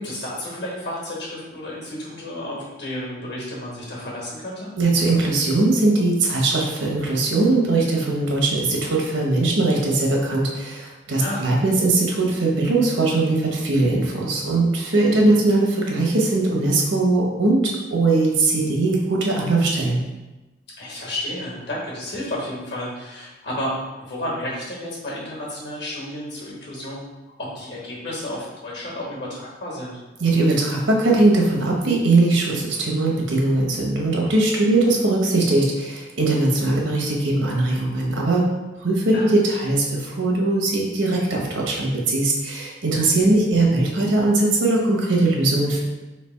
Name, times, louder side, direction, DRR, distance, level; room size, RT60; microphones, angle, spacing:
voice 1, 0.0-4.7 11.2-11.5 15.1-15.4 20.8-23.7 24.0-27.0 27.4-30.0 34.9-35.0 39.1-39.3, left 1 dB, 60° left, -4 dB, 1.4 m, -32 dB
voice 2, 4.8-20.0 30.2-38.5 38.8-45.8, right 2 dB, 80° right, -1 dB, 0.9 m, -20 dB
3.3 x 2.8 x 4.4 m, 1.1 s
head